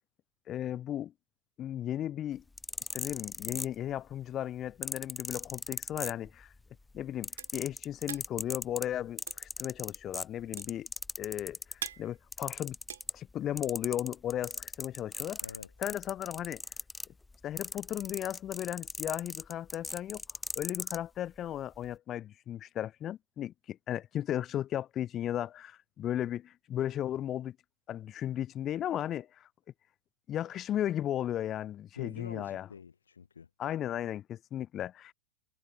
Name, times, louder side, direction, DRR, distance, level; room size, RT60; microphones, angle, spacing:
voice 1, 0.5-1.1 1.6-2.4 2.9-6.5 6.9-10.9 11.2-11.6 12.0-12.8 13.1-15.4 15.8-16.6 17.4-20.2 20.6-27.6 27.9-29.5 30.3-32.7 33.6-35.1, left 11 dB, 30° left, 5.4 m, -35 dB
sound 1, 2.4-4.1 4.8-6.6 6.9-11.9 12.3-13.3 13.6-21.0 21.7-21.9, left 3 dB, 10° left, 2.5 m, -39 dB
sound 2, 6.7-13.9, right 10 dB, 65° right, 6.9 m, -46 dB
voice 2, 15.4-15.7 31.9-33.5, left 6 dB, 70° left, 7.3 m, -46 dB
figure-of-eight pair, 90°, 0 cm